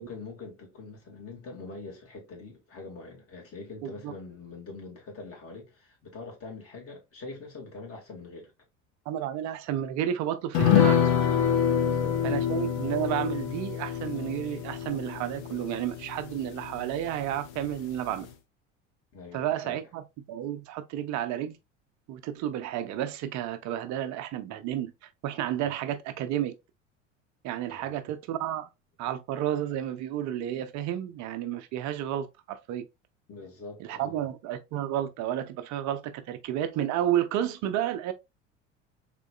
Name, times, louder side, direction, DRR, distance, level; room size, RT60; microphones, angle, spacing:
voice 1, 0.0-8.5 11.7-12.2 19.1-19.8 27.7-28.0 33.3-34.2, left 3 dB, 40° left, 2.2 m, -44 dB
voice 2, 3.8-4.1 9.1-11.1 12.2-18.3 19.3-21.6 22.1-24.9 25.2-26.5 27.4-28.7 29.0-32.8 33.8-38.1, right 11 dB, 50° right, 0.7 m, -31 dB
sound 1, 10.5-17.3 17.6-17.7 18.1-18.2, left 9 dB, 60° left, 0.8 m, -26 dB
3.7 x 3.4 x 2.4 m
hypercardioid pair, 70°, 37 cm